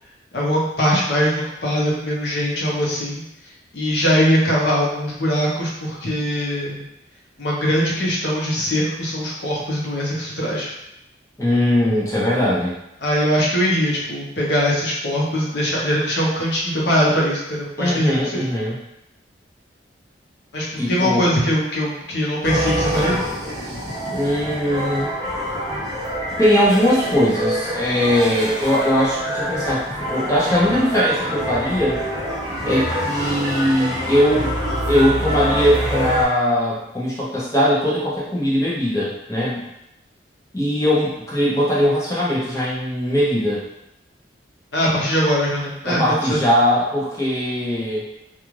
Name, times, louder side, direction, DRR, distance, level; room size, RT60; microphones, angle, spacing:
voice 1, 0.3-3.2 3.7-6.8 7.4-10.7 13.0-18.5 20.5-23.2 44.7-46.4, equal, 65° left, -4 dB, 0.8 m, -21 dB
voice 2, 11.4-12.7 17.8-18.8 20.8-21.3 24.1-25.1 26.4-32.0 32.6-34.5 34.9-39.6 40.5-43.6 45.9-48.1, equal, 15° left, -7 dB, 0.6 m, -20 dB
sound 1, 22.4-36.2, equal, 20° right, 0.7 m, -26 dB
2.4 x 2.4 x 3.1 m, 0.86 s
head